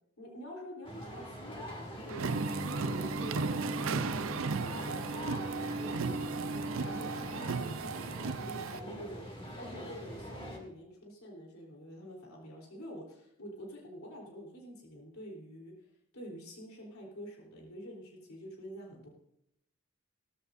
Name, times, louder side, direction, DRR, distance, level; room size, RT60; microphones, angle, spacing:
voice 1, 0.2-2.4 2.8-6.5 6.8-15.9 16.1-19.1, equal, 90° left, -2 dB, 3.7 m, -47 dB
sound 1, 0.8-10.6, equal, 25° left, 2.5 m, -44 dB
sound 2, 2.1-8.8, right 5 dB, 70° right, 0.5 m, -36 dB
sound 3, 2.2-7.4, right 1 dB, 45° right, 1.7 m, -39 dB
17.5 x 14.5 x 2.6 m, 0.79 s
head